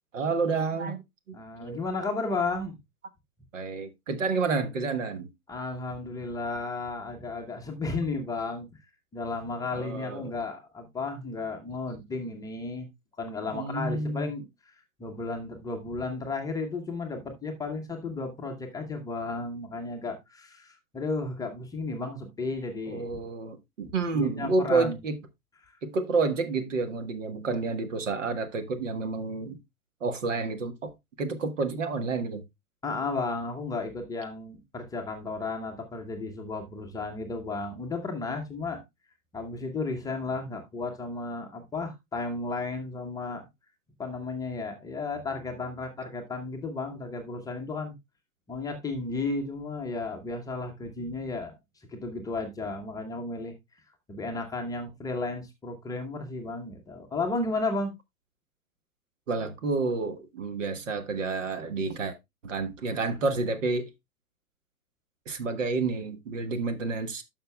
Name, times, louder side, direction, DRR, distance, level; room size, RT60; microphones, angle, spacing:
voice 1, 0.1-1.0 1.6-1.8 3.5-5.3 9.7-10.3 13.5-14.3 22.9-25.2 25.8-29.6 30.0-30.9 31.2-32.4 59.3-62.1 62.4-63.9 65.3-67.2, right 4 dB, 60° right, 1.4 m, -29 dB
voice 2, 1.3-2.8 5.5-8.7 9.1-12.9 13.2-14.4 15.0-23.3 24.1-25.0 25.6-25.7 32.8-38.8 39.3-43.4 44.0-47.9 48.5-51.5 51.9-53.5 54.1-57.9, left 3 dB, 10° left, 0.9 m, -33 dB
12.0 x 5.8 x 2.3 m
figure-of-eight pair, 110°, 43 cm